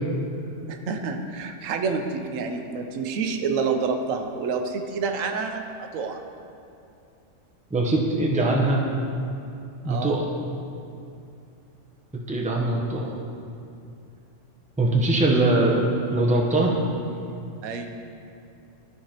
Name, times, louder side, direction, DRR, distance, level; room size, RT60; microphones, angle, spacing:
voice 1, 0.7-6.2 9.9-10.2 17.6-18.0, right 5 dB, 90° right, 5 dB, 1.0 m, -28 dB
voice 2, 7.7-8.8 9.8-10.3 12.3-13.1 14.8-15.8 16.1-16.8, right 2 dB, 10° right, -2 dB, 0.6 m, -22 dB
12.5 x 4.8 x 2.9 m, 2.6 s
omnidirectional pair, 1.3 m